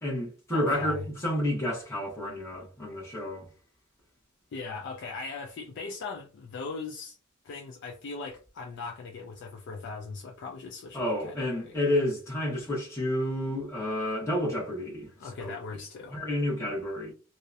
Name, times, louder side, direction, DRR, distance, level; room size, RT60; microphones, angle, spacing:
voice 1, 0.0-3.5 10.9-15.5 16.1-17.1, left 1 dB, 15° left, 0.8 m, -30 dB
voice 2, 0.5-1.0 4.5-7.2 7.4-11.8 15.2-16.2, left 4 dB, 55° left, 0.4 m, -39 dB
2.7 x 2.0 x 2.3 m
head